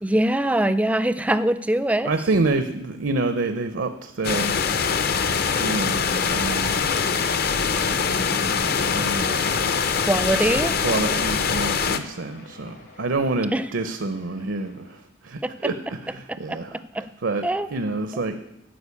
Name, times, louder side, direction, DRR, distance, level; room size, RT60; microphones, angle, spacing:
voice 1, 0.0-2.1 10.1-10.7 13.5-13.6 15.4-15.5 16.3-16.6 16.9-17.0 17.4-17.7, right 1 dB, 5° right, 13 dB, 0.4 m, -22 dB
voice 2, 2.1-4.6 5.6-6.0 6.3-6.8 8.6-9.5 10.8-17.4 17.7-18.4, right 3 dB, 75° right, 9 dB, 0.7 m, -27 dB
sound 1, 4.2-12.0, left 5 dB, 55° left, 0.7 m, -23 dB
Cheering, 8.0-15.0, left 2 dB, 85° left, 3.1 m, -42 dB
13.0 x 5.2 x 8.2 m, 0.86 s
head